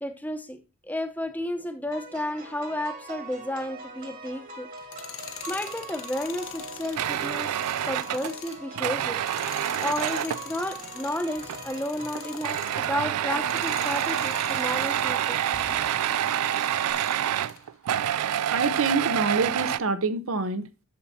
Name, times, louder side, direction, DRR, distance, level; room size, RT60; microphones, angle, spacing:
voice 1, 0.0-4.7 5.5-9.2 9.8-15.4 15.7-15.8, left 1 dB, 5° left, 0.8 m, -32 dB
sound 1, 1.9-16.9, right 4 dB, 40° right, 1.5 m, -41 dB
Tools, 4.8-13.0 13.4-17.6, left 9 dB, 65° left, 1.1 m, -43 dB
sound 2, 6.9-10.5 11.4-11.8 12.2-19.8, right 11 dB, 85° right, 0.3 m, -27 dB
voice 2, 18.5-20.8, right 3 dB, 65° right, 0.7 m, -26 dB
11.0 x 7.1 x 2.8 m
head